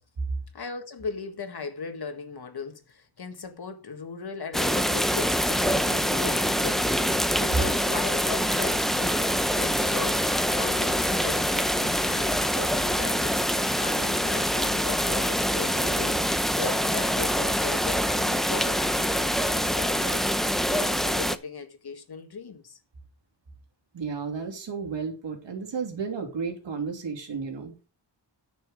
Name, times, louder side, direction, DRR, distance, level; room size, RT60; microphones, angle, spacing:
voice 1, 0.5-10.2 10.6-13.4 13.8-16.2 16.6-20.2 20.7-22.8, left 5 dB, 60° left, 1.8 m, -38 dB
sound 1, 4.5-21.4, equal, ahead, 0.7 m, -25 dB
voice 2, 23.9-27.7, right 5 dB, 75° right, 3.0 m, -33 dB
9.6 x 6.5 x 5.0 m
cardioid pair, 75°, 44 cm